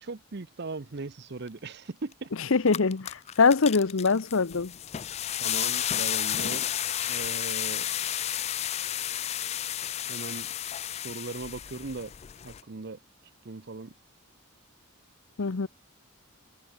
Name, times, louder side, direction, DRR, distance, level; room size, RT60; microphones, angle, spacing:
voice 1, 0.0-2.3 5.4-6.6 7.1-7.9 10.1-10.5 10.9-12.1 12.4-13.0 13.4-13.9, right 3 dB, 50° right, 0.7 m, -38 dB
sound 1, 2.1-2.2 2.5-12.6, left 11 dB, 30° left, 0.3 m, -32 dB
voice 2, 2.4-4.7 15.4-15.7, left 4 dB, 65° left, 0.7 m, -23 dB
head